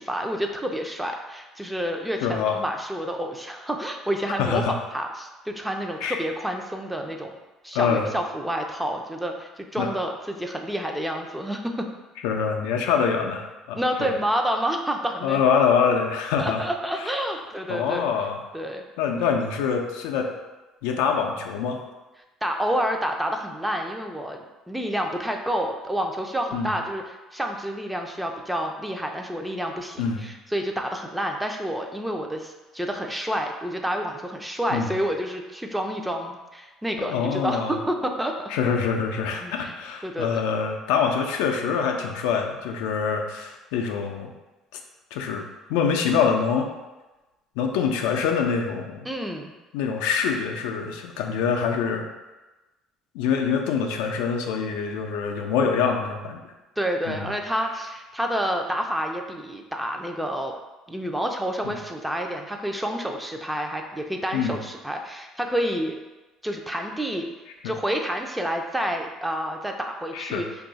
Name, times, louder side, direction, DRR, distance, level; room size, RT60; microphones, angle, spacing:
voice 1, 0.0-7.3 7.6-11.9 13.8-15.4 16.4-18.1 18.5-18.8 22.4-24.4 24.7-38.5 39.4-39.7 40.0-40.3 49.1-49.5 56.8-60.5 60.9-66.0 66.4-67.3 67.6-70.5, equal, 5° right, 3 dB, 0.4 m, -29 dB
voice 2, 2.2-2.6 4.4-4.8 6.0-6.2 7.7-8.1 9.8-9.9 12.2-14.1 15.2-16.6 17.0-17.1 17.7-18.4 19.0-20.3 20.8-21.8 26.5-26.8 30.0-30.3 34.7-34.9 37.0-37.8 38.5-44.3 45.1-46.7 47.6-49.1 49.7-52.1 53.1-56.4 57.1-57.3 61.6-61.8 64.3-64.6 67.6-67.7 70.1-70.4, left 6 dB, 85° left, 3 dB, 0.3 m, -25 dB
2.6 x 2.3 x 3.9 m, 1.1 s
supercardioid pair, 90°, 0 cm